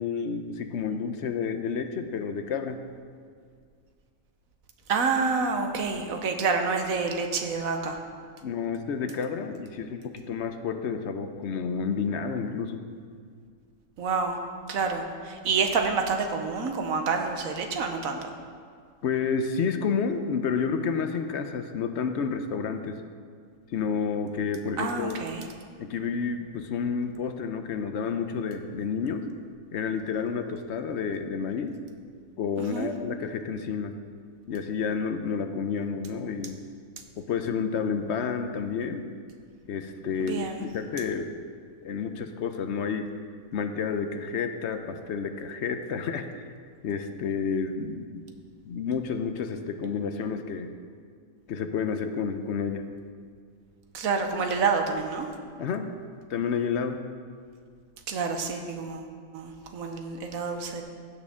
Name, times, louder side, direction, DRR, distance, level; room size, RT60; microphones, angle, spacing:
voice 1, 0.0-2.8 8.4-12.9 19.0-23.0 23.7-25.2 25.8-29.3 29.7-31.8 32.4-34.0 34.5-36.6 37.2-39.1 39.7-41.4 41.8-43.1 43.5-46.6 46.8-48.2 48.7-50.7 51.5-52.8 55.6-55.9 56.3-57.0, left 6 dB, 65° left, 7 dB, 0.8 m, -30 dB
voice 2, 4.9-8.0 14.0-14.4 14.7-18.3 24.8-25.4 32.6-32.9 40.2-40.6 53.9-55.3 58.1-60.8, right 4 dB, 80° right, 4 dB, 1.3 m, -28 dB
15.5 x 6.5 x 3.6 m, 2.1 s
omnidirectional pair, 1.4 m